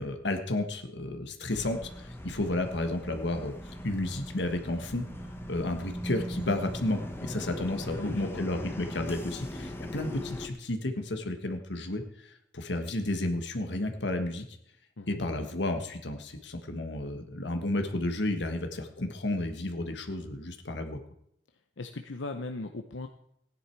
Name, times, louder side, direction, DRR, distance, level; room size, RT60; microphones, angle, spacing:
voice 1, 0.0-3.5 3.8-5.0 5.5-14.5 15.1-21.0, left 1 dB, 70° left, 6 dB, 1.4 m, -32 dB
sound 1, 1.5-10.5, equal, 15° left, 1.1 m, -40 dB
voice 2, 7.9-8.5 15.0-15.2 21.8-23.1, left 2 dB, 90° left, 6 dB, 0.8 m, -38 dB
15.5 x 10.5 x 4.6 m, 0.73 s
head